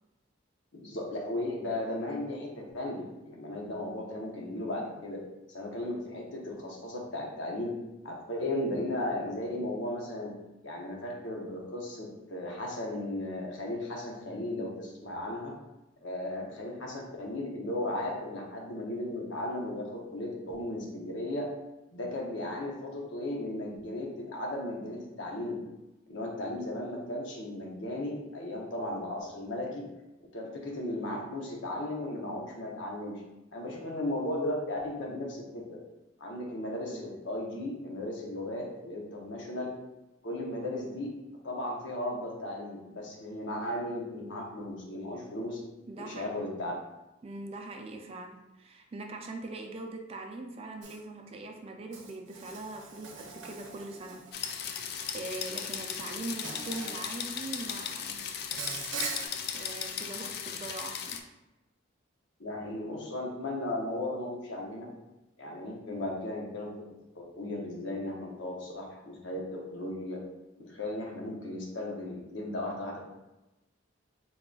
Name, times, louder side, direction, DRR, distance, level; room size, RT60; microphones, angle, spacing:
voice 1, 0.7-5.2 5.5-7.8 8.0-10.3 10.6-15.5 16.0-21.5 21.9-25.6 26.1-29.9 30.3-33.2 33.5-35.8 36.2-39.7 40.2-41.1 41.4-45.6 46.0-46.7 62.4-64.9 65.4-66.7 67.2-70.2 70.6-73.0, left 1 dB, 70° left, -1 dB, 0.9 m, -36 dB
voice 2, 45.9-46.4 47.2-54.7 55.1-58.3 59.5-61.2, right 2 dB, 30° right, 3 dB, 0.4 m, -42 dB
Insect, 50.8-51.0 51.9-54.5 55.6-55.8 56.4-57.0 57.3-57.8 58.5-59.3, right 4 dB, 75° right, 0.7 m, -41 dB
sound 1, 54.3-61.2, left 7 dB, 55° left, 0.3 m, -37 dB
3.8 x 3.7 x 2.3 m, 0.99 s
head